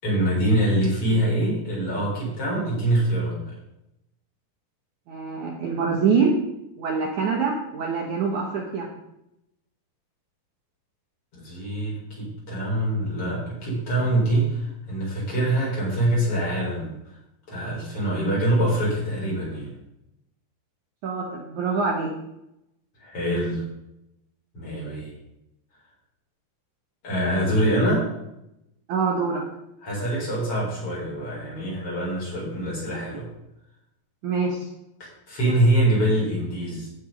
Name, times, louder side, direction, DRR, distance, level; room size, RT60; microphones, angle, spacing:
voice 1, 0.0-3.5 11.4-16.9 17.5-19.7 23.0-23.6 24.5-25.1 27.0-28.1 29.8-33.3 35.0-36.9, right 1 dB, 35° left, -5 dB, 5.4 m, -24 dB
voice 2, 5.1-6.3 6.8-8.9 21.0-22.1 28.9-29.4 34.2-34.7, right 5 dB, 65° right, 0 dB, 2.2 m, -25 dB
16.0 x 6.1 x 5.2 m, 0.85 s
omnidirectional pair, 4.8 m